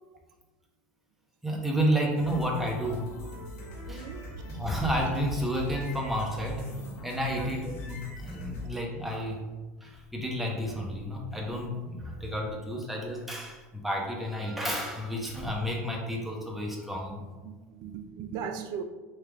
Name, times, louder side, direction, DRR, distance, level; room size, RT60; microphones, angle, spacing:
voice 1, 1.4-3.0 3.9-4.0 4.5-6.7 7.0-9.4 9.8-17.3, equal, 5° right, -2 dB, 1.0 m, -31 dB
sound 1, 2.2-8.7, left 1 dB, 70° left, 1.2 m, -41 dB
voice 2, 3.9-4.3 7.4-7.5 17.4-18.8, right 7 dB, 55° right, 7 dB, 0.4 m, -38 dB
3.4 x 3.2 x 3.4 m, 1.2 s
hypercardioid pair, 85°, 9 cm